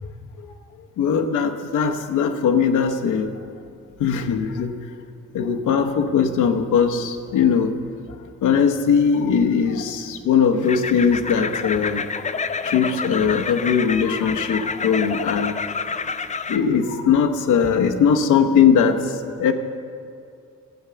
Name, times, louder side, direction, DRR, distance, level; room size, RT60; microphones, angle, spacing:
voice 1, 1.0-3.3 4.0-4.7 5.3-7.8 8.4-12.2 12.6-15.6 16.5-19.0 19.4-19.5, left 6 dB, 85° left, 4 dB, 1.0 m, -20 dB
sound 1, 10.6-16.6, left 5 dB, 25° left, 0.5 m, -28 dB
13.5 x 8.1 x 6.8 m, 2.5 s
cardioid pair, 90°, 30 cm